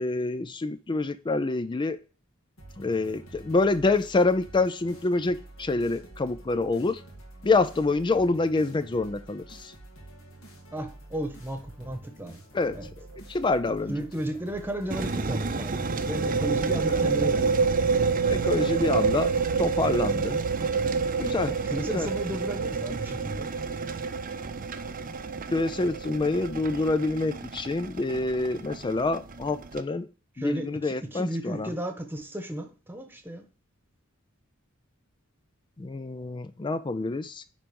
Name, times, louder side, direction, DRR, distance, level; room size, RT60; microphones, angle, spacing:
voice 1, 0.0-2.0 2.8-7.0 7.4-9.7 12.5-12.8 13.2-14.0 18.3-19.3 19.6-20.4 21.2-21.5 21.9-22.1 25.5-30.1 30.4-31.7 35.8-37.5, left 3 dB, 20° left, 0.4 m, -26 dB
sound 1, 2.6-17.4, right 1 dB, 80° left, 2.5 m, -48 dB
voice 2, 10.7-12.4 12.7-12.9 13.9-17.6 21.5-23.5 30.4-33.5, right 1 dB, 10° right, 1.2 m, -34 dB
sound 2, 12.6-12.9 13.1-13.2 15.7-27.1, right 5 dB, 75° right, 0.4 m, -28 dB
sound 3, 14.9-29.8, right 3 dB, 40° right, 0.7 m, -35 dB
10.0 x 3.8 x 5.2 m
head